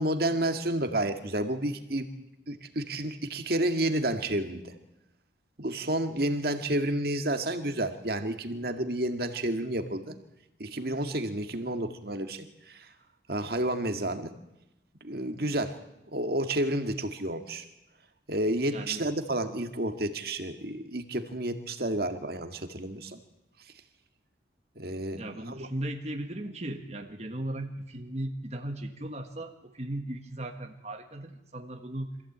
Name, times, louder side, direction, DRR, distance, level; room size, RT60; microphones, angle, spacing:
voice 1, 0.0-2.1 2.5-4.7 5.6-10.1 10.6-12.9 13.3-14.3 15.0-15.8 16.1-17.7 18.3-23.2 24.8-25.7, right 1 dB, 55° right, 6 dB, 2.0 m, -30 dB
voice 2, 18.7-19.1 25.1-32.1, right 1 dB, 35° right, 4 dB, 1.7 m, -37 dB
25.5 x 15.5 x 8.7 m, 0.90 s
head